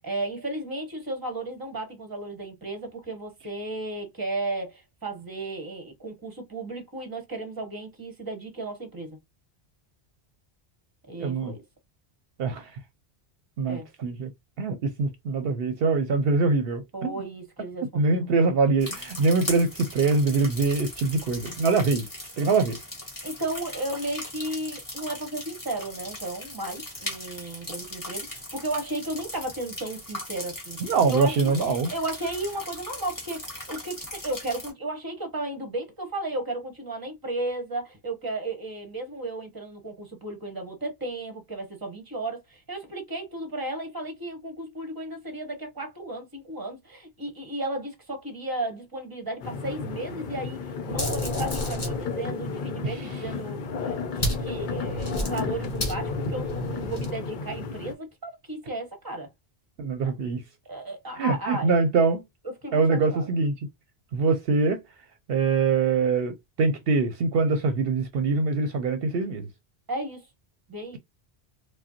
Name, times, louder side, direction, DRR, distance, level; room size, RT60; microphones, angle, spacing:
voice 1, 0.0-9.2 11.1-11.6 13.7-13.9 16.9-18.1 23.2-59.3 60.7-61.7 62.6-63.3 69.9-70.3 70.7-71.0, right 2 dB, 20° right, 1.0 m, -34 dB
voice 2, 11.2-11.5 12.4-12.8 13.6-14.3 14.6-17.2 17.9-22.1 22.4-22.8 30.8-31.9 52.8-53.2 59.8-60.4 61.2-62.2 62.7-63.7 64.1-64.8 65.3-69.5, right 4 dB, 65° right, 0.8 m, -24 dB
sound 1, 18.8-34.7, left 1 dB, 20° left, 1.5 m, -39 dB
sound 2, 49.4-57.9, left 4 dB, 55° left, 0.7 m, -32 dB
sound 3, 50.9-52.0 54.1-57.1, equal, 40° left, 1.5 m, -32 dB
4.9 x 2.1 x 2.8 m
omnidirectional pair, 1.1 m